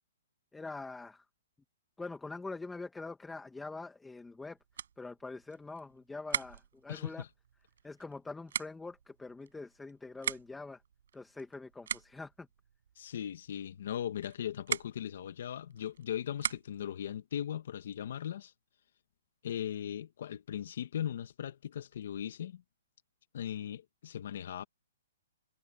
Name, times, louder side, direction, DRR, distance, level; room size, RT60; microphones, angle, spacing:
voice 1, 0.5-1.3 2.0-4.6 5.0-7.2 7.8-10.8 11.1-12.5, left 3 dB, 5° left, 2.2 m, -44 dB
sound 1, 4.2-17.0, right 8 dB, 70° right, 6.0 m, -43 dB
voice 2, 6.9-7.3 13.0-18.5 19.4-22.6 23.3-24.6, left 10 dB, 60° left, 1.9 m, -38 dB
hypercardioid pair, 155°, 0 cm